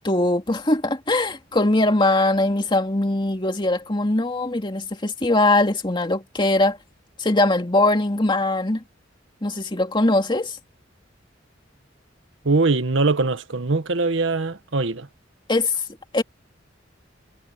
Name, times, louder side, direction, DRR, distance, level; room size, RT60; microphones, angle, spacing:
voice 1, 0.0-6.8 7.2-8.8 9.4-10.6 15.5-15.7 16.1-16.2, left 2 dB, 25° left, 2.5 m, -21 dB
voice 2, 12.4-15.1, right 3 dB, 90° right, 1.2 m, -22 dB
head